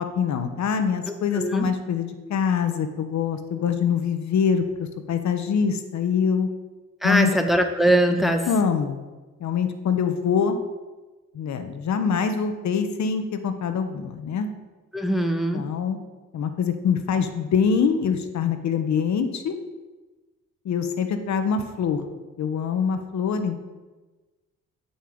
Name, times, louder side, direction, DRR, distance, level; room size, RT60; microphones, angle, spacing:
voice 1, 0.0-6.5 7.0-7.3 8.5-9.0 9.4-10.6 11.3-14.5 15.5-16.0 16.3-19.6 20.6-22.0 22.4-23.6, left 6 dB, 65° left, 8 dB, 1.2 m, -24 dB
voice 2, 1.4-1.7 7.0-8.5 14.9-15.6, right 1 dB, ahead, 4 dB, 1.5 m, -21 dB
11.0 x 5.8 x 8.7 m, 1.2 s
cardioid pair, 90°, 30 cm